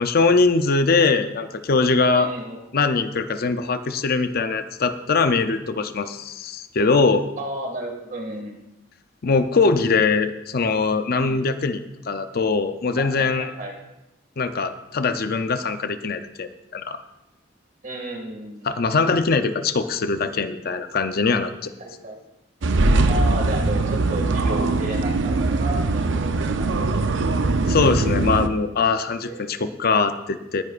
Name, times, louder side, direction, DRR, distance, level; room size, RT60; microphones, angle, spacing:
voice 1, 0.0-2.3 2.7-7.3 9.2-13.5 14.4-17.0 18.7-21.7 27.7-30.6, left 4 dB, 50° left, 10 dB, 0.6 m, -22 dB
voice 2, 2.1-2.6 7.4-8.7 11.2-11.4 13.0-13.8 17.8-18.8 21.8-22.2 23.1-26.8 29.2-29.9, right 1 dB, 45° right, 1 dB, 2.1 m, -33 dB
sound 1, 22.6-28.5, right 3 dB, 70° right, 0.6 m, -21 dB
19.0 x 10.0 x 2.5 m, 0.93 s
head